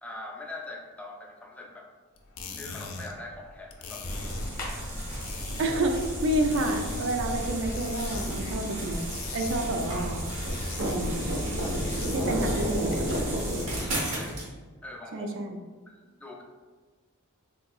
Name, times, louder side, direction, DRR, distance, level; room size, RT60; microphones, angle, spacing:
voice 1, 0.0-1.9 2.5-4.1 13.8-14.3 14.8-15.3 16.0-16.4, left 2 dB, 5° left, -1 dB, 0.4 m, -42 dB
sound 1, 2.2-12.5, left 4 dB, 70° left, 0.4 m, -43 dB
sound 2, 4.0-14.0, equal, 40° left, 0.7 m, -36 dB
sound 3, 4.1-14.5, right 1 dB, 85° right, 1.1 m, -33 dB
voice 2, 5.6-6.0 6.2-9.0 9.3-10.2 10.8-11.3 12.1-13.0 15.1-15.6, right 1 dB, 60° right, 4 dB, 0.4 m, -29 dB
3.7 x 2.7 x 2.3 m, 1.4 s
head